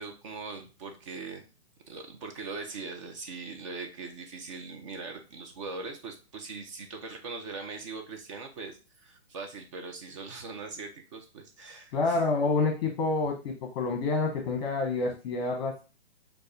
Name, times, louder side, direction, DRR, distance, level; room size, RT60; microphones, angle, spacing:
voice 1, 0.0-1.4 1.9-12.2, right 4 dB, 30° right, 3 dB, 0.5 m, -41 dB
voice 2, 11.9-15.8, left 3 dB, 40° left, 2 dB, 0.9 m, -28 dB
6.3 x 2.2 x 2.6 m, 0.33 s
hypercardioid pair, 140°, 33 cm